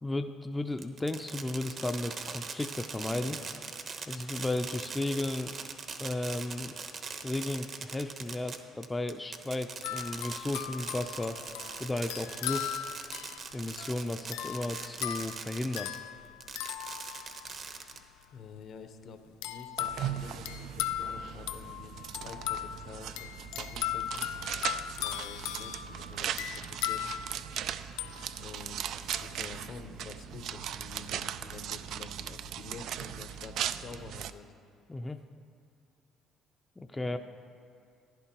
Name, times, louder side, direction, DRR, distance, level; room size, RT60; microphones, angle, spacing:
voice 1, 0.0-3.4 4.1-5.6 6.0-6.8 7.2-11.4 11.8-12.8 13.5-15.9 34.9-35.2 36.8-37.2, left 2 dB, 15° left, 6 dB, 0.5 m, -34 dB
Fireworks, 0.8-16.0 16.4-18.2, right 5 dB, 50° right, 1.0 m, -41 dB
sound 1, 9.8-17.7 19.4-28.6 29.1-29.3, left 12 dB, 85° left, 0.4 m, -38 dB
voice 2, 18.3-24.3 25.0-27.1 28.4-34.5 37.0-37.2, left 5 dB, 60° left, 7 dB, 0.9 m, -48 dB
sound 2, 19.8-34.3, right 9 dB, 70° right, 0.3 m, -38 dB
15.0 x 10.5 x 3.0 m, 2.5 s
supercardioid pair, 70°, 0 cm